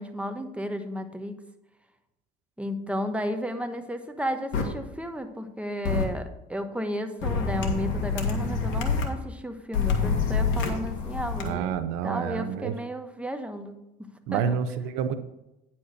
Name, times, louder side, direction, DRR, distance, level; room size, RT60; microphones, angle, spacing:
voice 1, 0.0-1.4 2.6-14.6, equal, 5° right, 6 dB, 1.2 m, -33 dB
sound 1, 4.5-4.6 5.8-6.0 7.2-9.0 9.7-11.5, left 5 dB, 70° left, 1.8 m, -26 dB
voice 2, 11.4-12.7 14.3-15.1, right 7 dB, 75° right, 12 dB, 0.7 m, -28 dB
9.6 x 4.3 x 6.5 m, 0.92 s
hypercardioid pair, 70°, 21 cm